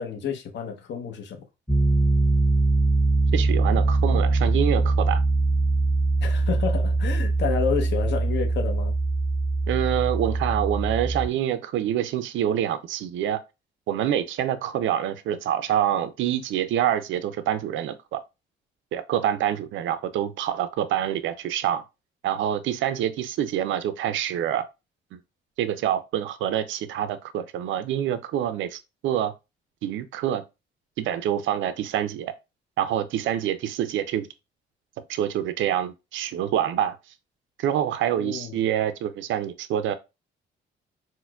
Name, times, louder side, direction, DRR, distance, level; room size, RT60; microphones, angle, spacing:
voice 1, 0.0-1.4 6.2-8.9 38.2-38.6, left 6 dB, 65° left, 0.8 m, -30 dB
Piano, 1.7-11.3, right 2 dB, ahead, 0.4 m, -22 dB
voice 2, 3.3-5.2 9.7-13.4 13.9-18.2 18.9-21.8 22.2-24.6 25.1-25.2 25.6-29.3 29.8-30.4 31.0-32.3 32.8-34.3 35.1-37.0 37.6-39.9, right 10 dB, 75° right, 0.4 m, -26 dB
4.3 x 2.1 x 2.3 m
cardioid pair, 90°, 20 cm